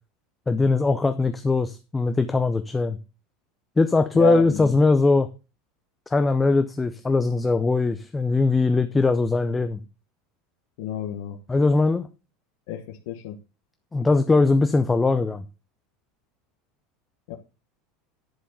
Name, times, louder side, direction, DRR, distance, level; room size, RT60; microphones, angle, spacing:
voice 1, 0.5-3.0 3.8-5.3 6.1-9.8 11.5-12.1 13.9-15.4, left 3 dB, 10° left, 9 dB, 0.4 m, -21 dB
voice 2, 4.1-4.7 10.8-11.4 12.7-13.4 17.3-17.4, left 12 dB, 65° left, 5 dB, 1.2 m, -29 dB
10.5 x 4.7 x 6.6 m, 0.32 s
supercardioid pair, 170°, 0 cm